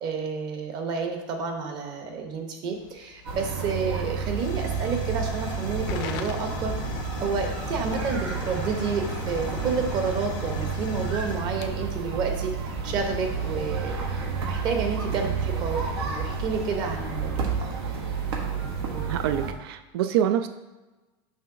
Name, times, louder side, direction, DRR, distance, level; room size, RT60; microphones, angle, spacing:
voice 1, 0.0-12.5 12.8-14.2 14.5-17.5, right 5 dB, 35° right, 4 dB, 0.9 m, -30 dB
Hiss / Fire / Tick, 2.7-13.1, left 7 dB, 50° left, 0.6 m, -40 dB
sound 1, 3.3-19.5, right 5 dB, 85° right, 1.3 m, -30 dB
voice 2, 18.8-20.5, right 10 dB, 70° right, 10 dB, 0.4 m, -26 dB
6.4 x 3.0 x 5.7 m, 1.1 s
supercardioid pair, 170°, 13 cm